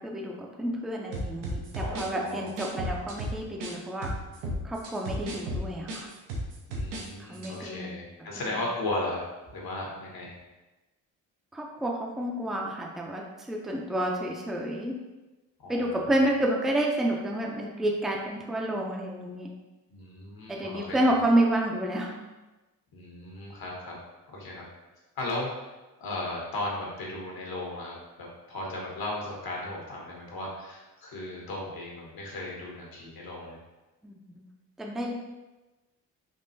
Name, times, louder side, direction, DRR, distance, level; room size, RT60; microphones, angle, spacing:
voice 1, 0.0-4.1 4.6-6.1 7.3-7.9 11.5-15.0 15.7-19.5 20.5-22.3 34.0-34.4 34.8-35.1, right 1 dB, ahead, -1 dB, 0.4 m, -29 dB
sound 1, 1.1-3.7 4.0-7.1 7.3-7.5, equal, 90° right, 0.7 m, -34 dB
voice 2, 1.8-2.4 6.7-10.4 15.6-16.1 19.9-21.1 22.9-24.0 24.3-24.6 25.2-25.5 26.0-33.6, left 2 dB, 65° left, -2 dB, 1.1 m, -36 dB
3.6 x 2.4 x 2.7 m, 1.1 s
cardioid pair, 70°, 39 cm